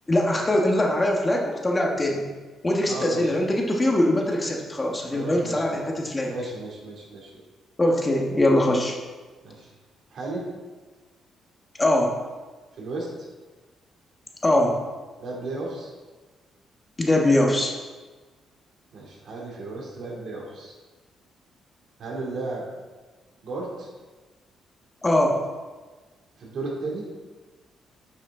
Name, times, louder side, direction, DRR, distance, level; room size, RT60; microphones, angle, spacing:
voice 1, 0.1-2.2 2.6-6.3 7.8-9.0 11.8-12.1 14.4-14.7 17.0-17.7 25.0-25.4, left 1 dB, 20° left, 0 dB, 1.5 m, -22 dB
voice 2, 2.8-3.3 5.1-5.8 6.3-7.4 9.4-9.7 10.1-10.5 12.7-13.3 15.2-15.9 18.9-20.7 22.0-22.6 23.4-23.9 26.4-27.1, right 2 dB, 65° right, -2 dB, 2.8 m, -34 dB
10.0 x 6.3 x 3.8 m, 1.3 s
cardioid pair, 90°, 0 cm